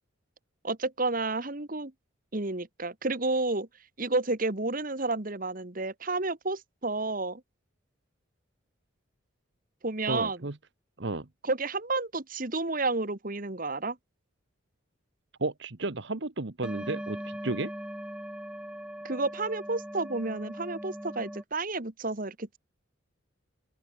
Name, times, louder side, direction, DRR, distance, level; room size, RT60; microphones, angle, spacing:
voice 1, 0.6-1.9 2.3-3.7 4.0-7.4 9.8-10.4 11.4-14.0 19.0-22.6, right 3 dB, 40° right, 1.6 m, -31 dB
voice 2, 10.1-10.6 11.0-11.3 15.4-17.7, right 2 dB, 60° right, 1.2 m, -33 dB
sound 1, 16.6-21.4, equal, 5° right, 1.1 m, -40 dB
open air
head